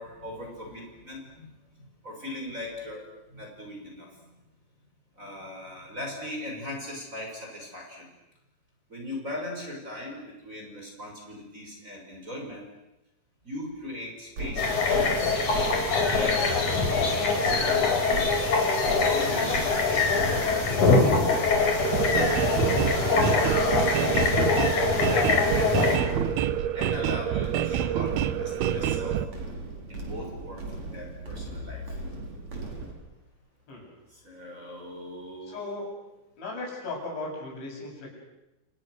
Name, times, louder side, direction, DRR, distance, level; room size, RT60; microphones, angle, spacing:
voice 1, 0.0-4.3 5.2-8.1 8.9-12.6 13.4-15.4 16.1-16.7 17.1-18.0 19.0-21.5 22.5-26.1 26.7-29.2 29.9-32.1 34.1-35.6, left 1 dB, 15° right, 0 dB, 6.3 m, -39 dB
sound 1, 14.4-32.9, right 2 dB, 40° right, 5.4 m, -38 dB
sound 2, 14.6-26.0, left 4 dB, 45° left, 5.3 m, -23 dB
sound 3, 21.8-29.3, right 11 dB, 70° right, 2.8 m, -27 dB
voice 2, 35.5-36.1 36.4-38.1, left 2 dB, 90° left, -1 dB, 10.0 m, -36 dB
29.5 x 29.5 x 6.6 m, 0.95 s
omnidirectional pair, 5.1 m